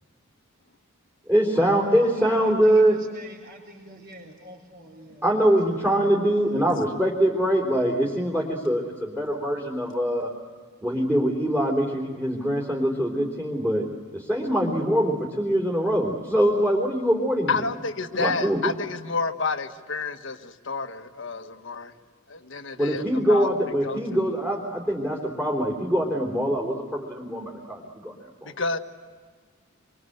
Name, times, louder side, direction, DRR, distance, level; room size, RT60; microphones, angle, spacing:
voice 1, 1.3-3.0 5.2-10.3 10.8-13.9 14.1-17.6 18.2-18.8 22.8-28.1 28.4-28.5, equal, 10° right, -1 dB, 3.6 m, -23 dB
voice 2, 1.9-5.3 5.7-5.8, right 1 dB, 55° right, -6 dB, 4.2 m, -45 dB
voice 3, 17.5-21.9 22.3-23.5 23.8-24.0 28.4-28.8, left 4 dB, 60° left, 7 dB, 1.5 m, -29 dB
26.5 x 24.5 x 8.0 m, 1.5 s
head